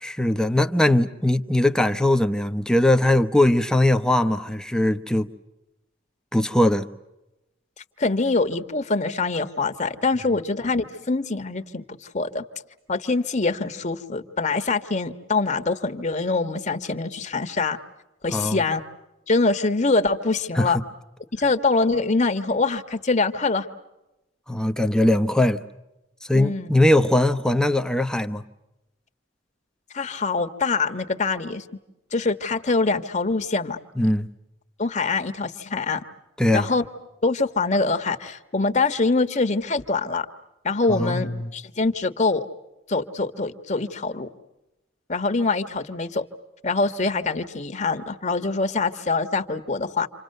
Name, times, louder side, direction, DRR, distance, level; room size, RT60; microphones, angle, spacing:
voice 1, 0.0-5.3 6.3-6.9 18.3-18.6 20.5-20.8 24.5-25.6 26.3-28.4 34.0-34.3 36.4-36.7 40.9-41.5, left 1 dB, 5° left, 1.0 m, -20 dB
voice 2, 8.0-11.8 12.1-12.4 12.9-17.8 18.2-18.8 19.3-20.8 21.3-23.7 26.3-26.7 29.9-31.6 32.1-33.8 34.8-36.0 36.5-36.8 37.2-40.3 40.6-42.5 42.9-44.3 45.1-46.3 46.6-50.1, left 3 dB, 35° left, 1.5 m, -24 dB
29.0 x 26.5 x 6.7 m
head